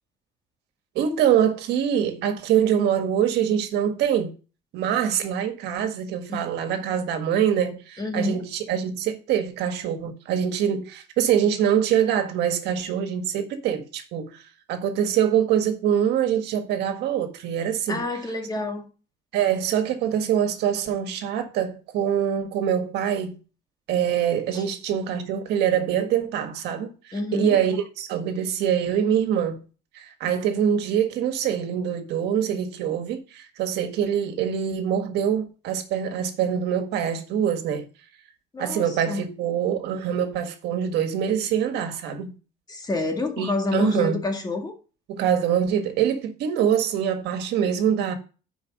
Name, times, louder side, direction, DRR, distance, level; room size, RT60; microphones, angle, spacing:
voice 1, 0.9-4.3 4.7-14.4 14.7-18.0 19.3-23.4 23.9-29.6 29.9-37.9 38.6-42.3 43.4-44.2 45.1-48.1, right 9 dB, 80° right, 1.7 m, -24 dB
voice 2, 8.0-8.4 17.9-18.9 24.5-24.6 27.1-27.6 38.5-39.2 42.7-44.7, left 2 dB, 25° left, 1.9 m, -28 dB
10.0 x 5.0 x 5.2 m
cardioid pair, 110°, 17 cm